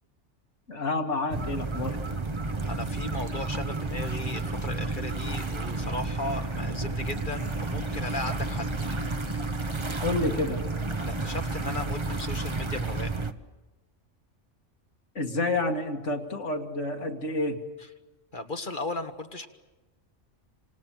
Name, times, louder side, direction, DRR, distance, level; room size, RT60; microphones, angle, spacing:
voice 1, 0.7-2.0 10.0-10.6 15.1-17.6, left 2 dB, 75° left, 2 dB, 2.6 m, -29 dB
sound 1, 1.3-13.3, right 3 dB, 25° right, 1.1 m, -31 dB
voice 2, 2.6-8.9 11.0-13.1 18.3-19.5, left 2 dB, 45° left, 6 dB, 1.8 m, -36 dB
28.0 x 27.0 x 7.6 m, 1.2 s
omnidirectional pair, 1.2 m